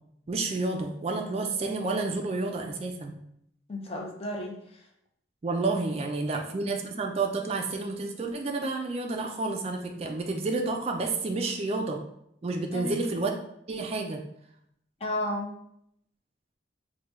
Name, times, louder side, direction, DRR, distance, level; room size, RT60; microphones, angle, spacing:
voice 1, 0.3-3.2 5.4-12.0 12.4-13.4 13.7-14.2, right 3 dB, 35° right, 3 dB, 0.3 m, -30 dB
voice 2, 3.7-4.9 6.2-6.4 12.7-13.0 15.0-15.5, left 1 dB, 30° left, 0 dB, 0.6 m, -33 dB
4.8 x 2.2 x 3.0 m, 0.74 s
head